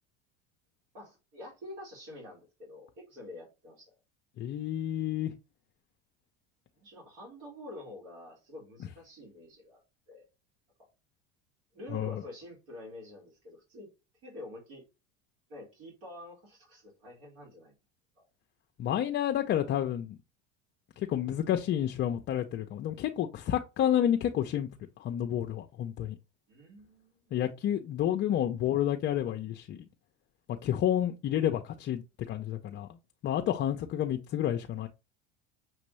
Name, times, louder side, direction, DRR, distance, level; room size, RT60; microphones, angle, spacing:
voice 1, 0.9-3.9 6.8-9.8 10.1-10.3 11.7-13.9 14.2-14.8 15.5-17.7 18.2-18.3 26.5-27.4, left 1 dB, 75° right, 2.3 m, -47 dB
voice 2, 4.4-5.3 11.9-12.2 18.8-20.2 21.0-24.7 25.0-26.2 27.3-29.8 30.6-32.9 33.2-34.9, left 11 dB, 35° left, 0.5 m, -30 dB
6.1 x 2.6 x 3.1 m
supercardioid pair, 110°, 33 cm